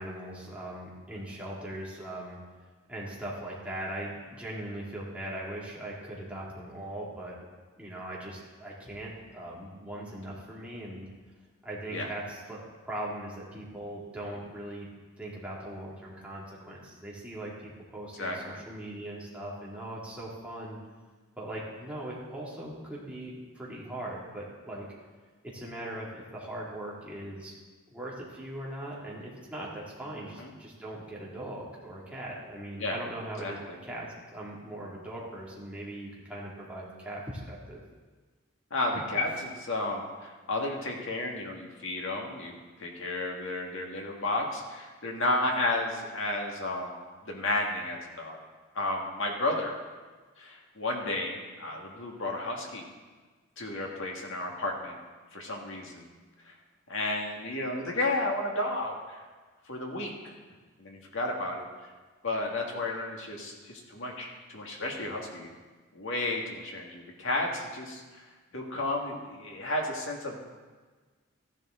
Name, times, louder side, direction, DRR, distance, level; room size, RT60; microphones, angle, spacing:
voice 1, 0.0-2.4 2.9-7.3 7.8-11.1 11.6-12.6 12.9-14.9 15.2-20.8 21.4-24.9 25.5-27.5 27.9-37.8, right 1 dB, 5° right, -6 dB, 2.5 m, -40 dB
voice 2, 18.2-18.6 30.4-30.5 32.8-33.0 33.4-33.8 38.7-48.4 48.7-49.7 50.4-52.8 53.6-55.0 55.3-56.1 56.4-56.5 56.9-59.2 59.7-60.4 60.8-61.7 62.2-65.5 65.9-68.2 68.5-70.4, left 2 dB, 65° left, 0 dB, 1.9 m, -32 dB
14.0 x 10.5 x 3.8 m, 1.4 s
head